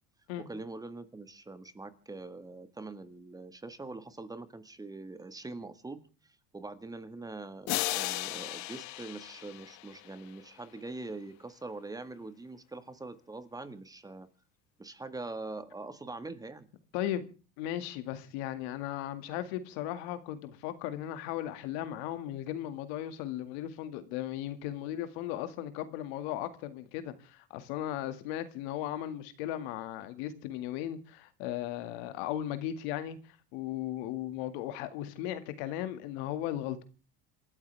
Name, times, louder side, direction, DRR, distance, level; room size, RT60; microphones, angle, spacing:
voice 1, 0.4-14.3 14.8-16.7, right 3 dB, 10° right, 1.7 m, -43 dB
sound 1, 7.7-10.3, left 17 dB, 60° left, 1.2 m, -35 dB
voice 2, 16.9-17.3 17.6-33.2 33.5-36.8, left 12 dB, 80° left, 2.1 m, -36 dB
28.0 x 13.0 x 3.5 m
supercardioid pair, 115°, 31 cm